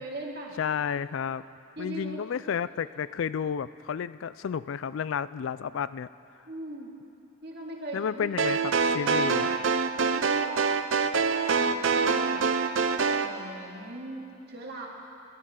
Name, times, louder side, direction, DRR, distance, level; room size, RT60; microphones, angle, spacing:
voice 1, 0.0-0.6 1.8-2.3 6.4-7.0 7.4-8.4 10.0-10.8 11.2-12.5 12.9-14.9, right 2 dB, 50° right, -2 dB, 2.3 m, -40 dB
voice 2, 0.6-1.4 1.8-6.1 7.9-9.5, left 7 dB, 70° left, 16 dB, 0.3 m, -31 dB
sound 1, 8.4-13.3, right 5 dB, 65° right, 0.7 m, -25 dB
29.0 x 12.5 x 3.8 m, 2.6 s
head